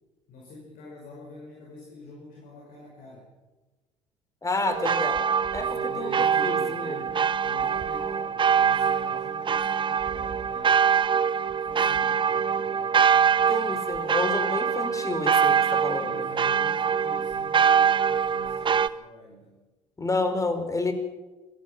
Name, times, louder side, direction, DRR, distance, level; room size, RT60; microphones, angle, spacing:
voice 1, 0.3-3.3 5.5-10.8 11.6-13.7 15.9-19.7, left 2 dB, 60° left, -2 dB, 6.0 m, -46 dB
voice 2, 4.4-5.2 5.5-5.7 6.0-6.1 6.4-7.2 13.5-16.2 20.0-20.9, left 3 dB, 20° left, 8 dB, 4.3 m, -29 dB
sound 1, 4.7-18.9, right 7 dB, 30° right, 0.9 m, -24 dB
25.5 x 18.5 x 5.9 m, 1.2 s
hypercardioid pair, 60°, 16 cm